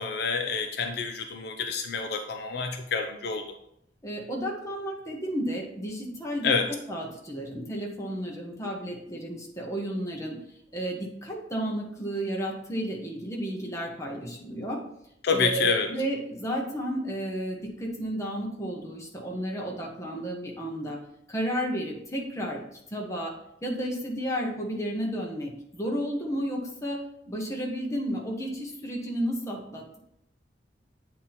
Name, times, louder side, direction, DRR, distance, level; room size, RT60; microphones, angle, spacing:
voice 1, 0.0-3.4 6.4-6.7 15.2-15.9, left 5 dB, 60° left, 5 dB, 0.5 m, -28 dB
voice 2, 4.0-6.5 6.9-10.4 10.7-14.8 15.3-21.0 21.3-22.6 22.9-23.3 23.6-30.0, equal, 15° left, -2 dB, 1.1 m, -32 dB
8.4 x 2.9 x 4.1 m, 0.76 s
head